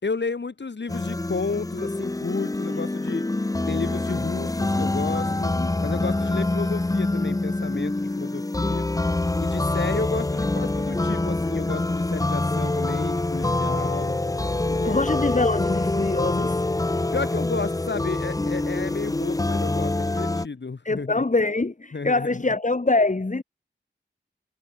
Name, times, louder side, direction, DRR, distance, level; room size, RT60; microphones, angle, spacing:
voice 1, 0.0-3.3 3.7-8.9 9.4-14.2 14.7-15.0 17.1-21.2 21.9-22.3, left 4 dB, 65° left, 3.7 m, -32 dB
sound 1, 0.9-20.5, left 2 dB, 15° left, 0.7 m, -25 dB
voice 2, 5.6-6.3 14.8-16.6 20.8-23.4, left 2 dB, 40° left, 3.4 m, -24 dB
cardioid pair, 45°, 20 cm